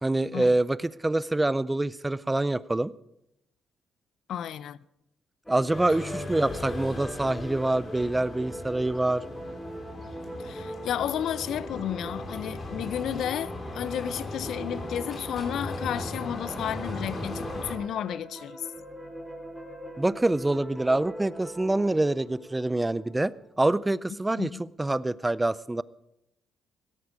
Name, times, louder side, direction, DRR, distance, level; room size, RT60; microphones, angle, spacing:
voice 1, 0.0-2.9 5.5-9.2 20.0-25.8, right 2 dB, 15° right, 0.4 m, -26 dB
voice 2, 4.3-4.8 10.4-18.7 24.4-24.6, left 10 dB, 75° left, 0.5 m, -32 dB
sound 1, 5.4-23.5, right 1 dB, 10° left, 3.5 m, -42 dB
sound 2, 5.7-17.8, left 2 dB, 40° left, 3.3 m, -38 dB
17.0 x 13.5 x 4.9 m
cardioid pair, 90°, 0 cm